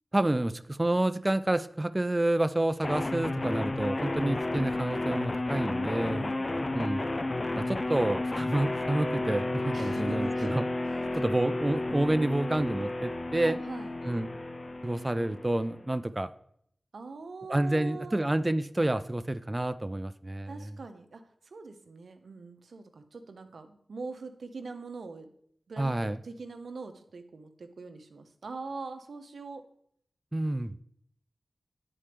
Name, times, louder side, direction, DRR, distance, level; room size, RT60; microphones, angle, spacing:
voice 1, 0.1-6.2 6.7-7.0 7.6-10.6 11.1-13.6 14.0-14.3 14.8-16.3 17.5-20.5 25.8-26.2 30.3-30.7, right 1 dB, 25° right, 12 dB, 0.3 m, -29 dB
sound 1, 2.8-15.8, left 2 dB, 45° left, 0.4 m, -32 dB
voice 2, 6.0-6.6 9.7-10.6 11.0-11.1 13.3-13.9 16.9-18.2 20.5-25.3 25.7-29.6, right 3 dB, 85° right, 7 dB, 0.7 m, -42 dB
9.8 x 4.3 x 3.3 m, 0.68 s
cardioid pair, 45°, 0 cm